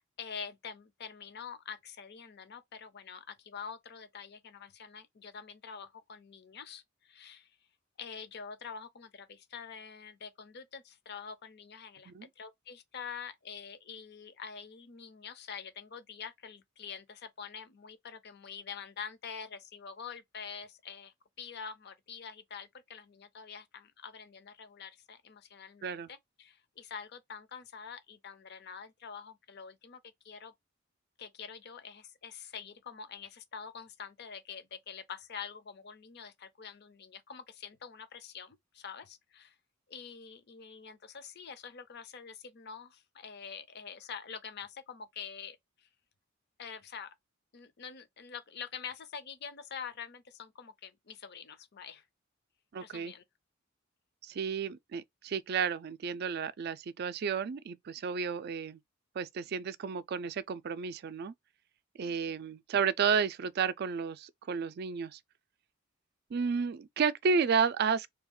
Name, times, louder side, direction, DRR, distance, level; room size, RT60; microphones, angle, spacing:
voice 1, 0.0-7.5 8.0-30.5 31.2-39.6 39.9-45.9 46.6-47.1 47.5-52.1 52.8-53.2 62.0-62.4, left 6 dB, 55° left, 0.6 m, -46 dB
voice 2, 52.7-53.1 54.2-58.8 59.2-61.3 62.0-65.2 66.3-68.1, right 6 dB, 50° right, 0.3 m, -32 dB
2.8 x 2.4 x 3.6 m
head